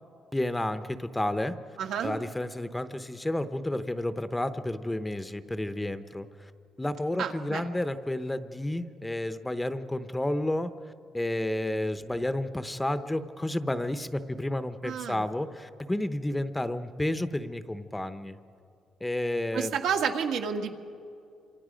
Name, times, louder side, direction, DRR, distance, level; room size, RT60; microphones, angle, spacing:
voice 1, 0.3-1.6 2.0-6.5 6.8-18.4 19.0-19.8, left 1 dB, 10° left, 11 dB, 0.8 m, -31 dB
voice 2, 1.8-2.2 7.2-7.6 14.8-15.2 19.5-20.7, right 7 dB, 80° right, 4 dB, 1.7 m, -30 dB
27.5 x 25.5 x 5.1 m, 2.5 s
cardioid pair, 135°, 0 cm